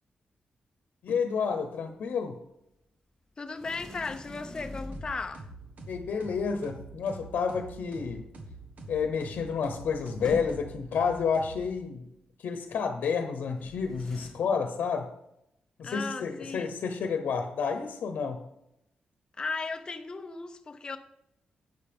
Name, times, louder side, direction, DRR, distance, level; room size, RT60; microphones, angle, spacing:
voice 1, 1.0-2.4 5.9-8.2 8.9-12.1 12.4-15.1 15.8-18.4, left 6 dB, 85° left, 0.9 m, -30 dB
voice 2, 3.4-5.5 15.8-16.7 19.4-21.0, left 4 dB, 30° left, 0.7 m, -36 dB
Sliding door, 3.5-5.5 9.0-9.1 9.3-10.9 13.5-14.3, equal, 10° left, 1.9 m, -44 dB
sound 1, 4.9-12.1, right 2 dB, 65° right, 1.4 m, -46 dB
11.5 x 8.2 x 3.6 m
wide cardioid pair, 165°, 3 cm